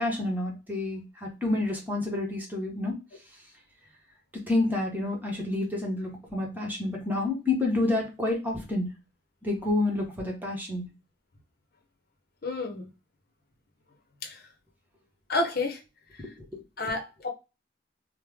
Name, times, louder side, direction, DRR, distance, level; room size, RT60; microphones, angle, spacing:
voice 1, 0.0-2.9 4.3-8.9 9.4-10.9 16.4-16.6, left 2 dB, 10° right, 1.1 m, -29 dB
voice 2, 12.4-12.9 14.2-14.3 15.3-15.8 16.8-17.3, left 2 dB, 60° left, 0.8 m, -29 dB
3.2 x 2.1 x 3.4 m
head